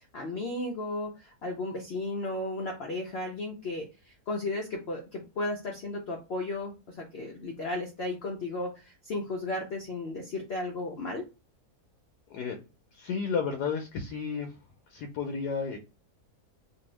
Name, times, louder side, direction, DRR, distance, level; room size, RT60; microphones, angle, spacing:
voice 1, 0.1-11.2, left 2 dB, 70° left, 1 dB, 0.6 m, -34 dB
voice 2, 12.9-14.6 14.9-15.8, left 5 dB, 90° left, 3 dB, 1.2 m, -32 dB
2.7 x 2.6 x 3.0 m, 0.29 s
omnidirectional pair, 1.7 m